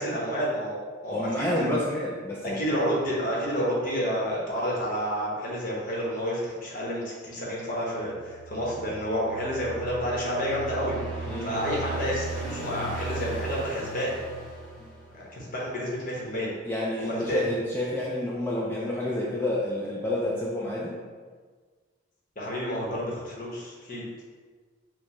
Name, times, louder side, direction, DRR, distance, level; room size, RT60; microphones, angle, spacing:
voice 1, 0.0-1.7 2.4-14.1 15.1-16.5 17.0-17.4 22.4-24.0, equal, 40° left, -5 dB, 1.0 m, -30 dB
voice 2, 1.1-2.7 11.3-11.6 16.7-21.0, left 1 dB, 10° left, -4 dB, 0.3 m, -29 dB
sound 1, 8.1-15.4, right 2 dB, 55° right, 1.2 m, -37 dB
4.6 x 2.3 x 4.2 m, 1.5 s
head